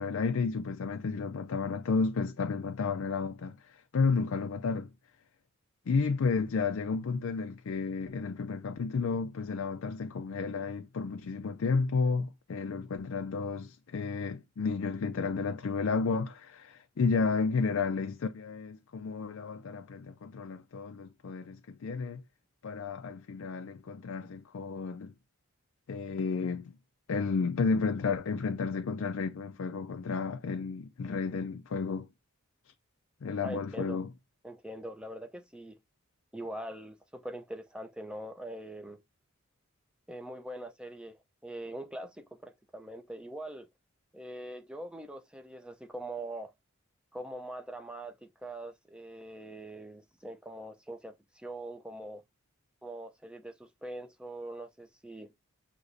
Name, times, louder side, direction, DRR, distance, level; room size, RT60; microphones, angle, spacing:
voice 1, 0.0-4.9 5.9-22.2 22.6-25.1 25.9-26.7 27.1-32.1 33.2-34.1, left 4 dB, 70° left, 0.4 m, -32 dB
voice 2, 33.4-34.0 34.4-35.8 36.3-39.0 40.1-43.7 44.1-46.5 47.1-52.2 52.8-55.3, right 1 dB, 5° right, 0.5 m, -43 dB
6.2 x 3.0 x 2.6 m
head